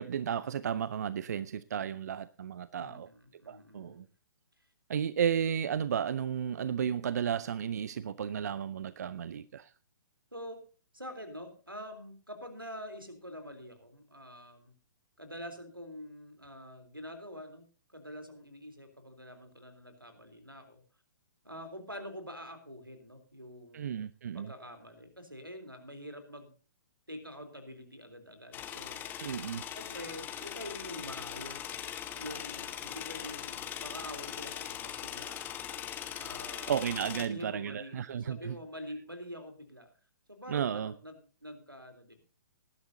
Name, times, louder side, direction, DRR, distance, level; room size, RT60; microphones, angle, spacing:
voice 1, 0.0-3.1 3.5-4.0 4.9-9.7 23.7-24.5 29.2-29.6 36.7-38.6 40.5-40.9, right 8 dB, 50° right, 0.6 m, -33 dB
voice 2, 2.8-4.1 4.6-4.7 10.3-10.6 10.9-14.7 15.2-20.8 21.4-23.9 24.3-26.5 27.1-29.1 29.7-31.8 32.2-35.4 36.1-36.8 37.2-39.9 40.3-42.2, equal, 90° right, 3.5 m, -46 dB
sound 1, 28.5-37.3, left 10 dB, 15° left, 1.3 m, -40 dB
19.5 x 11.5 x 2.7 m
figure-of-eight pair, 125°, 11 cm